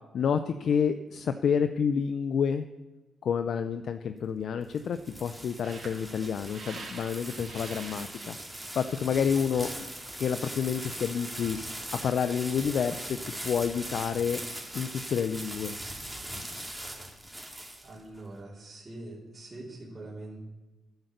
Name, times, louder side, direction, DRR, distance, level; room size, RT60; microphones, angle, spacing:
voice 1, 0.1-2.7 3.2-8.4 8.7-9.9 10.1-11.6 11.9-13.2 13.4-14.4 14.7-15.7, left 7 dB, 65° left, 10 dB, 0.5 m, -29 dB
sound 1, 4.4-18.2, right 1 dB, 5° right, 2.7 m, -40 dB
sound 2, 5.6-12.1, right 3 dB, 55° right, 3.2 m, -49 dB
voice 2, 17.8-20.4, right 2 dB, 30° right, -6 dB, 3.6 m, -43 dB
11.0 x 8.0 x 6.7 m, 1.1 s
cardioid pair, 75°, 0 cm